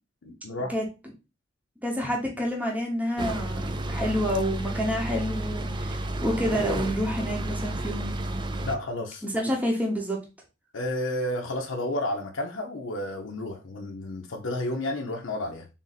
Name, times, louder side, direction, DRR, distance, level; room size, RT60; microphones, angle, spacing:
voice 1, 0.2-0.7 8.6-9.2 10.7-15.7, left 1 dB, 80° left, 0.6 m, -31 dB
voice 2, 1.8-8.1 9.3-10.2, equal, 10° right, 0.8 m, -28 dB
sound 1, 3.2-8.8, right 1 dB, 25° right, 0.3 m, -31 dB
3.7 x 2.6 x 4.0 m
head